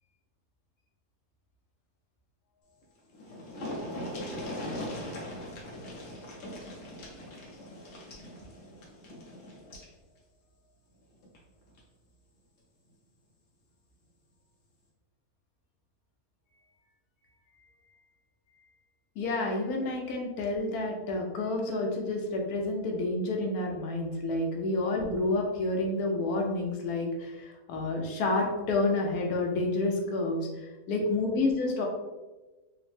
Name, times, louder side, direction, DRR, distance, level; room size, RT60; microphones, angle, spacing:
sound 1, 2.8-2.9 3.1-9.9 11.2-11.4 11.8-11.9, left 1 dB, 55° left, 0.9 m, -40 dB
voice 1, 19.2-31.9, left 2 dB, 75° left, 0 dB, 1.1 m, -29 dB
3.5 x 2.0 x 3.2 m, 1.2 s
omnidirectional pair, 1.7 m